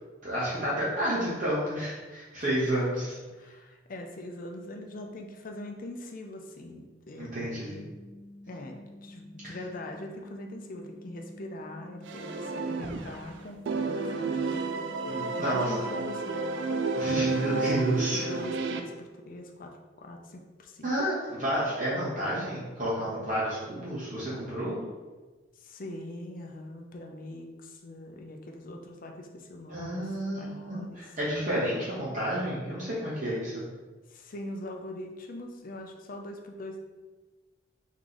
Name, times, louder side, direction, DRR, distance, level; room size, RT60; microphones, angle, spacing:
voice 1, 0.2-3.2 7.2-7.7 9.4-9.6 15.1-15.8 16.9-18.3 20.8-24.8 29.7-33.6, right 1 dB, 40° right, -8 dB, 1.0 m, -30 dB
voice 2, 3.3-7.9 8.5-16.6 17.2-20.9 25.6-31.2 34.1-36.8, left 1 dB, 45° left, 3 dB, 0.5 m, -42 dB
sound 1, 7.6-17.6, left 1 dB, 5° left, 1.2 m, -49 dB
sound 2, 12.1-13.3 13.7-18.8, right 3 dB, 70° right, 0.4 m, -31 dB
3.6 x 3.1 x 3.9 m, 1.3 s
head